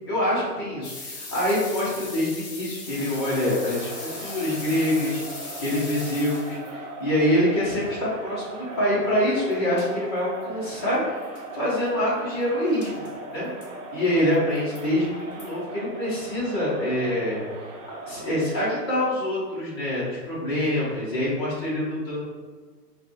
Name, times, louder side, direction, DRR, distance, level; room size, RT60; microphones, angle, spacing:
voice 1, 0.1-5.2 5.6-13.1 13.3-13.5 13.9-17.4 18.1-22.3, left 1 dB, 15° left, -9 dB, 0.7 m, -25 dB
sound 1, 0.8-6.7 9.5-9.6 9.8-9.9 10.4-10.5 10.7-10.8 11.2-11.4 12.8-13.1 13.6-13.7 14.3-14.8 15.4-15.5, left 3 dB, 40° left, 1.2 m, -39 dB
Crowd, 2.9-19.0, right 2 dB, 50° right, 0.8 m, -39 dB
4.6 x 2.3 x 4.1 m, 1.4 s
hypercardioid pair, 170°, 49 cm